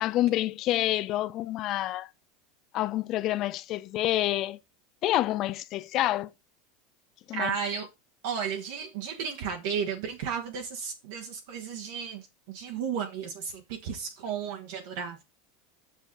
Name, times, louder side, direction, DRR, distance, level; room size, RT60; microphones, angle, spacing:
voice 1, 0.0-2.1 2.7-4.6 5.0-6.3 7.3-7.5, left 15 dB, 45° left, 0.6 m, -28 dB
voice 2, 7.3-7.9 8.2-15.2, right 7 dB, 60° right, 1.3 m, -34 dB
7.2 x 6.4 x 3.9 m
figure-of-eight pair, 80°, 0 cm